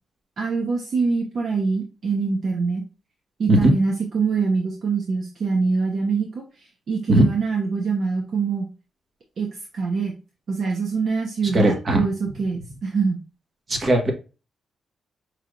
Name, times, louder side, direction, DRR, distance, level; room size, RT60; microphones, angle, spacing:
voice 1, 0.4-2.8 3.4-8.7 9.4-10.1 10.5-13.2, right 4 dB, 60° right, 1 dB, 0.9 m, -24 dB
voice 2, 11.5-12.0 13.7-14.1, right 1 dB, 40° right, 2 dB, 1.4 m, -18 dB
5.5 x 3.3 x 2.5 m, 0.32 s
cardioid pair, 100°, 0 cm